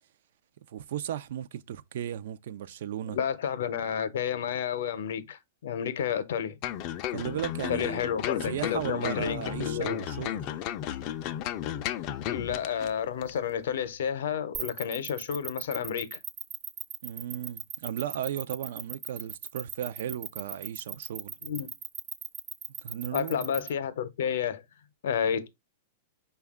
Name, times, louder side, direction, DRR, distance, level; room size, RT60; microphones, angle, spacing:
voice 1, 0.7-3.2 7.1-8.0 8.4-10.4 17.0-21.3 22.8-23.5, right 10 dB, 65° right, 0.4 m, -35 dB
voice 2, 3.1-6.6 7.7-10.0 12.3-16.2 21.4-21.7 23.1-24.6 25.0-25.5, left 8 dB, 75° left, 0.6 m, -31 dB
sound 1, 6.6-12.9 13.2-13.3, left 11 dB, 40° left, 0.4 m, -34 dB
sound 2, 14.5-23.7, right 7 dB, 30° right, 0.6 m, -37 dB
5.2 x 2.3 x 3.5 m
hypercardioid pair, 150°, 0 cm